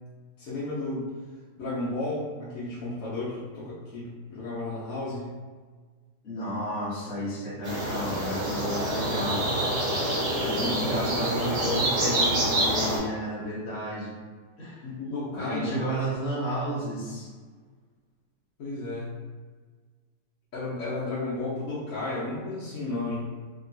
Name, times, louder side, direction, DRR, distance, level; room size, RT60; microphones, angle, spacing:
voice 1, 0.4-1.1 1.6-5.3 10.3-10.7 14.8-16.0 18.6-19.2 20.5-23.2, left 2 dB, 65° left, -9 dB, 0.8 m, -33 dB
voice 2, 6.2-9.4 10.3-14.1 14.6-14.9 15.3-17.3, equal, 50° left, -7 dB, 1.1 m, -32 dB
sound 1, 7.6-13.0, right 1 dB, 50° right, 1.2 m, -27 dB
3.0 x 2.8 x 2.5 m, 1.5 s
omnidirectional pair, 2.1 m